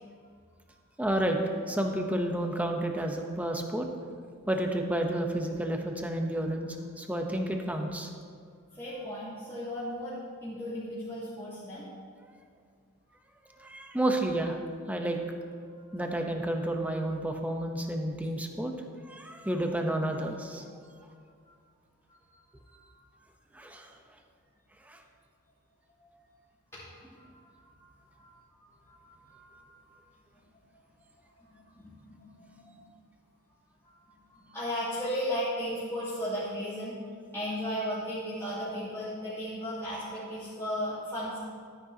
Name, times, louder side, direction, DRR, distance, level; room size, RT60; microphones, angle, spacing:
voice 1, 1.0-1.4 1.7-3.9 4.5-8.1 13.5-14.6 14.9-15.2 15.9-18.7 19.0-20.6 23.5-23.9 24.8-25.0, right 1 dB, 5° right, 3 dB, 0.7 m, -31 dB
voice 2, 8.7-11.9 13.7-13.8 15.8-16.0 20.8-21.1 21.4-21.5 22.1-22.4 22.7-23.1 26.0-26.2 26.7-28.3 28.6-30.0 31.3-32.8 33.8-33.9 34.3-37.0 37.3-41.4, equal, 10° left, -13 dB, 2.5 m, -36 dB
13.0 x 9.8 x 2.8 m, 2.1 s
head